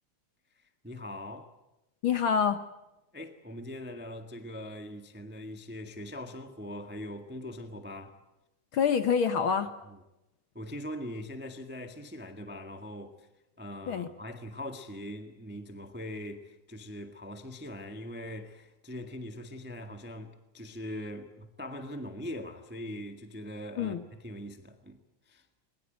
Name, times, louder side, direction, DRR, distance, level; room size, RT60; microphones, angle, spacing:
voice 1, 0.6-1.5 3.1-8.2 9.9-10.0 10.5-13.3 13.6-25.0 25.3-25.5, left 1 dB, 10° right, 0.4 m, -41 dB
voice 2, 2.0-2.6 8.7-9.7 13.9-14.1 23.8-24.0, left 7 dB, 60° left, 1.5 m, -26 dB
22.0 x 21.0 x 9.1 m
omnidirectional pair, 3.3 m